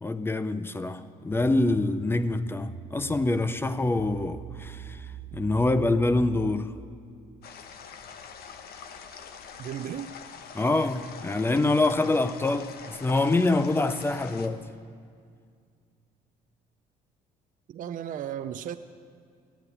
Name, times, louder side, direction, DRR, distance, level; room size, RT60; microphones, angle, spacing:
voice 1, 0.0-5.0 5.3-6.7 10.5-14.6, left 2 dB, 15° left, 0.6 m, -25 dB
sound 1, 1.6-6.6, right 6 dB, 85° right, 1.3 m, -43 dB
sound 2, 7.4-14.5, left 6 dB, 65° left, 1.1 m, -44 dB
voice 2, 9.6-10.1 17.7-18.8, right 10 dB, 50° right, 0.5 m, -35 dB
14.5 x 8.9 x 9.8 m
cardioid pair, 110°, 17 cm